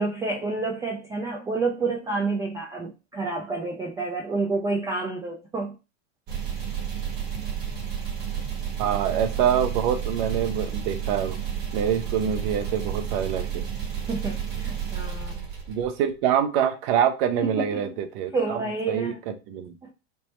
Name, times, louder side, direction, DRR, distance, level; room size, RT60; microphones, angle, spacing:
voice 1, 0.0-5.7 13.9-15.5 17.4-18.0 18.3-19.2 19.8-19.9, right 3 dB, 10° right, 0.3 m, -29 dB
sound 1, 6.3-16.1, right 8 dB, 30° right, 1.1 m, -31 dB
voice 2, 8.8-11.4 11.7-13.6 15.7-18.6 18.9-19.7, right 9 dB, 50° right, 0.7 m, -25 dB
3.4 x 2.0 x 4.1 m
hypercardioid pair, 125°, 35 cm